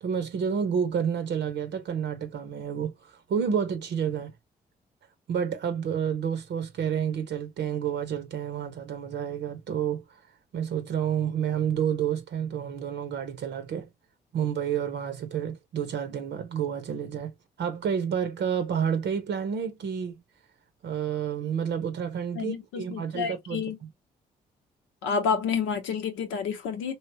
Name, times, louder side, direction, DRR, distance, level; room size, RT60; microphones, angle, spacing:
voice 1, 0.0-4.3 5.3-10.0 10.5-13.9 14.3-17.3 17.6-20.2 20.8-23.6, right 8 dB, 60° right, 0.7 m, -29 dB
voice 2, 22.3-23.8 25.0-27.0, left 6 dB, 75° left, 0.7 m, -29 dB
3.1 x 2.8 x 2.7 m
hypercardioid pair, 40°, 20 cm